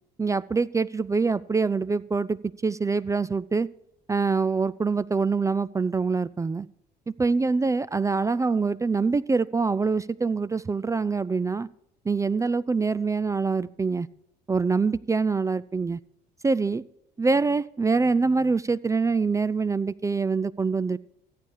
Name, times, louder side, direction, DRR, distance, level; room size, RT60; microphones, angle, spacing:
voice 1, 0.2-3.7 4.1-6.7 7.2-11.7 12.1-14.1 14.5-16.0 16.4-16.8 17.2-21.0, right 4 dB, 15° right, 0.3 m, -25 dB
14.0 x 8.4 x 4.8 m
hypercardioid pair, 65°, 20 cm